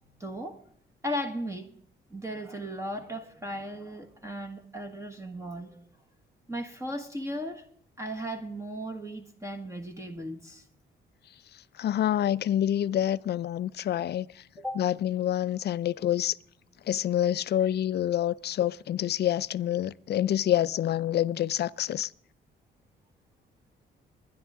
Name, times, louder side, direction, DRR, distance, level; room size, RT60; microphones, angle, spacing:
voice 1, 0.2-0.6 1.0-1.7 2.1-5.8 6.5-7.6 8.0-10.6 14.6-14.8, equal, 15° right, 1.5 m, -36 dB
voice 2, 11.8-14.4 14.8-16.4 16.9-22.1, left 11 dB, 55° left, 0.5 m, -27 dB
23.5 x 10.5 x 3.7 m
cardioid pair, 90°, 20 cm